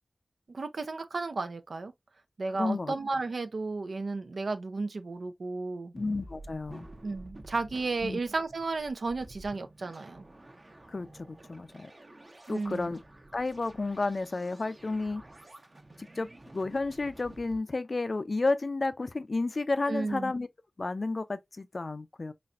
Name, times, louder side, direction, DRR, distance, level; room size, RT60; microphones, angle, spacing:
voice 1, 0.5-1.9 2.4-5.9 7.0-10.2 12.5-12.9 19.9-20.3, right 3 dB, 85° right, 0.6 m, -33 dB
voice 2, 2.5-2.9 5.9-6.9 8.0-8.2 10.9-11.9 12.5-13.0 13.3-15.2 16.0-20.5 20.8-22.3, left 3 dB, 60° left, 0.5 m, -32 dB
sound 1, 6.0-17.6, right 1 dB, 40° right, 0.8 m, -51 dB
4.1 x 3.2 x 2.4 m
wide cardioid pair, 65°, 0 cm